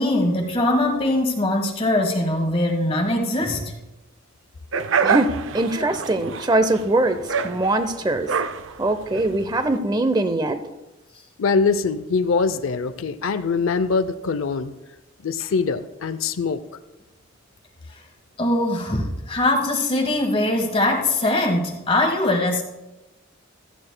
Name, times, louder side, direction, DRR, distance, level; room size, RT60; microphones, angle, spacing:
voice 1, 0.0-3.7 18.4-22.6, left 1 dB, 30° left, 3 dB, 1.4 m, -21 dB
sound 1, 4.7-9.8, right 6 dB, 70° right, 0.5 m, -26 dB
voice 2, 5.0-8.3 8.8-10.6, right 2 dB, 20° right, 11 dB, 0.7 m, -22 dB
voice 3, 11.4-14.7 15.2-16.6, left 4 dB, 80° left, 12 dB, 0.5 m, -23 dB
16.0 x 13.5 x 2.2 m, 1.0 s
head